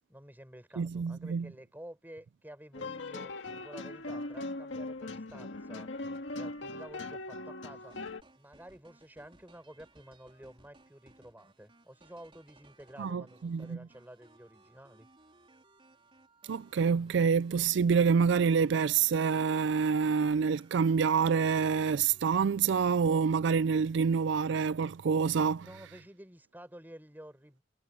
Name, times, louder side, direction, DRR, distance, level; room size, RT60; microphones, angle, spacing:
voice 1, 0.1-5.9 6.3-8.0 8.3-15.1 25.6-27.6, right 1 dB, 10° right, 5.3 m, -51 dB
voice 2, 0.8-1.5 13.0-13.8 16.5-25.7, right 6 dB, 65° right, 0.4 m, -27 dB
sound 1, 2.7-8.2, left 2 dB, 70° left, 2.0 m, -40 dB
sound 2, 7.8-22.5, right 2 dB, 30° right, 4.1 m, -62 dB
head